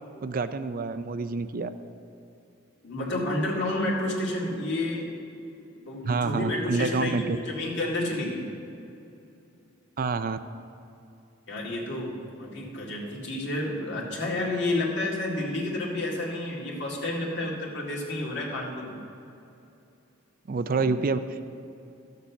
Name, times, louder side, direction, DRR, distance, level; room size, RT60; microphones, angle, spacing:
voice 1, 0.2-1.7 6.1-7.4 10.0-10.4 20.5-21.2, right 4 dB, 45° right, 11 dB, 0.4 m, -27 dB
voice 2, 2.8-5.1 5.9-8.5 11.5-19.0, left 1 dB, 60° left, -3 dB, 2.1 m, -30 dB
12.5 x 6.7 x 7.1 m, 2.7 s
head